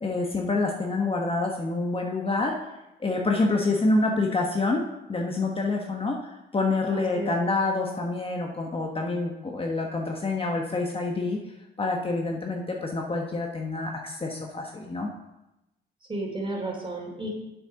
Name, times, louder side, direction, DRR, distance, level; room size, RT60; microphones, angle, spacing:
voice 1, 0.0-2.5 3.0-4.8 5.1-11.4 11.8-15.1, left 3 dB, 30° left, 0 dB, 1.2 m, -27 dB
voice 2, 6.9-7.3 16.1-17.3, right 1 dB, 25° right, -1 dB, 3.3 m, -32 dB
7.6 x 6.8 x 5.7 m, 0.92 s
cardioid pair, 90°, 20 cm